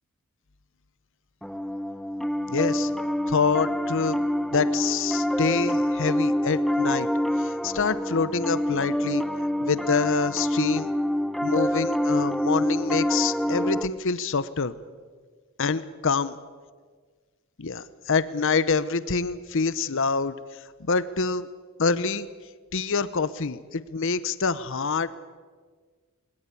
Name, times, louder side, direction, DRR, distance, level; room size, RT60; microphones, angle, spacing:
Piano, 1.4-13.9, equal, ahead, 0.6 m, -26 dB
voice 1, 2.5-2.9 3.3-4.2 4.5-7.1 7.4-9.2 9.6-10.9 11.4-14.7 15.6-16.3 17.6-20.3 20.8-21.5 21.8-22.3 22.7-25.1, left 5 dB, 65° left, 15 dB, 0.8 m, -26 dB
21.0 x 20.5 x 8.5 m, 1.5 s
head